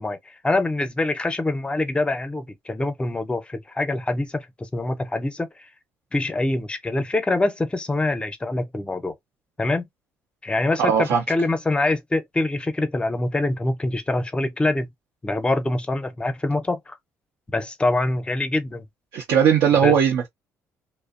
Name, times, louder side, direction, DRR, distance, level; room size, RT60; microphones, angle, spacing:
voice 1, 0.0-5.5 6.1-9.1 9.6-9.9 10.4-14.9 15.2-17.0 17.5-18.8 19.7-20.0, left 2 dB, 15° left, 0.6 m, -25 dB
voice 2, 10.8-11.2 19.1-20.3, right 8 dB, 80° right, 0.7 m, -18 dB
2.6 x 2.0 x 2.4 m
cardioid pair, 90°, 7 cm